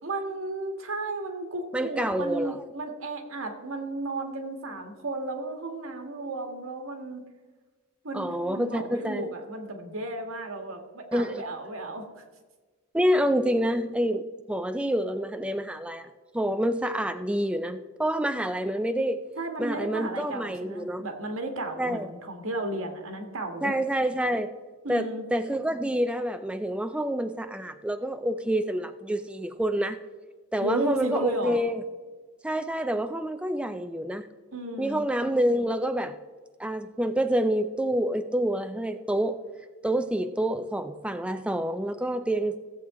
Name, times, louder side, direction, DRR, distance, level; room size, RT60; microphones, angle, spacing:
voice 1, 0.0-7.2 8.0-12.1 19.4-23.7 24.8-25.2 30.6-31.6 34.5-35.0, right 2 dB, 85° right, 4 dB, 1.7 m, -33 dB
voice 2, 1.7-2.6 8.1-9.2 11.1-11.4 12.9-16.1 16.3-19.2 19.6-21.0 21.8-22.1 23.6-24.5 24.9-30.0 30.5-31.8 32.4-34.3 34.8-36.2 36.6-39.4 39.8-42.6, equal, 5° right, 8 dB, 0.3 m, -27 dB
16.0 x 7.7 x 3.7 m, 1.3 s
head